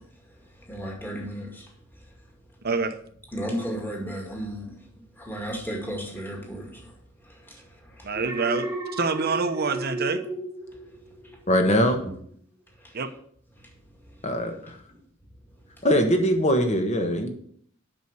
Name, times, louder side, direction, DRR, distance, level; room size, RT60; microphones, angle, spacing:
voice 1, 0.0-2.7 3.3-8.2 10.7-11.4 12.8-13.0 13.6-15.0 15.5-15.9, equal, 10° left, 2.1 m, -37 dB
voice 2, 2.6-3.0 8.0-10.2 12.9-13.1, right 4 dB, 50° right, 0.9 m, -26 dB
Alarm, 8.1-11.5 11.8-12.2, right 1 dB, 10° right, 1.5 m, -33 dB
voice 3, 11.5-12.0 14.2-14.8 15.8-17.3, equal, 35° left, 1.4 m, -22 dB
8.1 x 6.1 x 6.6 m
head